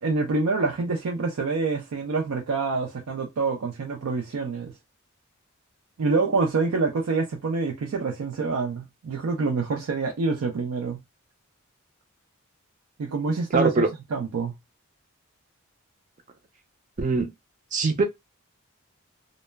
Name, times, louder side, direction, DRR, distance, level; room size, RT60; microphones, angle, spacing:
voice 1, 0.0-4.7 6.0-11.0 13.0-13.7 14.1-14.5, right 4 dB, 90° right, 0.4 m, -26 dB
voice 2, 13.5-13.9 17.0-17.3 17.7-18.0, right 3 dB, 35° right, 0.4 m, -22 dB
2.2 x 2.0 x 3.2 m
head